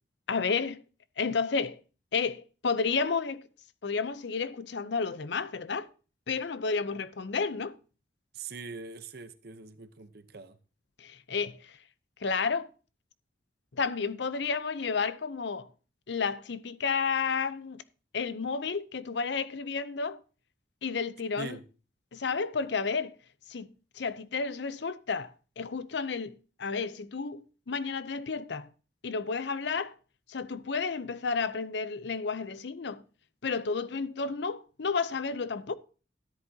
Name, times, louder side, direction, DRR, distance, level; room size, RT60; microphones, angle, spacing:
voice 1, 0.3-0.8 1.2-1.8 2.1-3.4 3.8-5.9 6.3-7.8 11.0-11.7 12.2-12.7 13.7-15.7 16.1-17.8 18.1-20.2 20.8-21.6 22.1-23.1 23.5-23.7 24.0-28.7 29.0-29.9 30.3-33.0 33.4-35.7, left 5 dB, 65° left, 0.6 m, -31 dB
voice 2, 8.3-10.6 21.4-21.6, right 4 dB, 55° right, 0.9 m, -42 dB
13.0 x 10.5 x 2.8 m
head